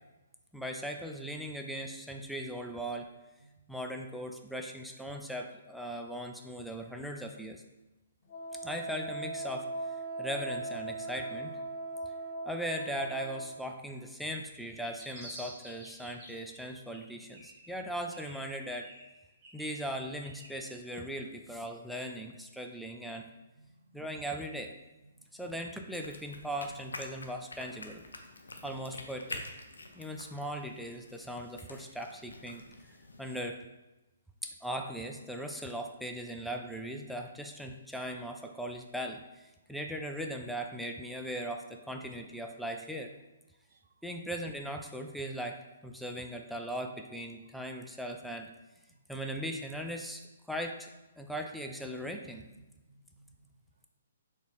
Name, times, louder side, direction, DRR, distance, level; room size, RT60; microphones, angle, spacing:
voice 1, 0.5-3.1 3.7-7.6 8.6-9.7 10.2-11.5 12.5-18.9 19.5-23.2 23.9-24.7 25.3-28.0 28.6-29.4 30.0-32.6 33.2-33.6 34.4-43.1 44.0-45.6 45.8-48.5 49.1-50.2 50.5-50.9 51.2-52.5, equal, ahead, 2 dB, 0.3 m, -39 dB
Wind instrument woodwind instrument, 8.3-13.5, right 2 dB, 55° left, 0.8 m, -39 dB
sound 1, 14.6-16.6 16.9-17.8 18.1-20.6, right 1 dB, 25° right, 1.5 m, -51 dB
voice 2, 23.6-23.9 25.2-25.4 43.7-43.9 48.9-49.0 52.6-53.4, right 2 dB, 75° right, 8 dB, 0.5 m, -62 dB
sound 2, 25.9-33.4, left 2 dB, 90° left, 0.6 m, -47 dB
4.1 x 3.0 x 3.5 m, 1.0 s
hypercardioid pair, 140°, 0 cm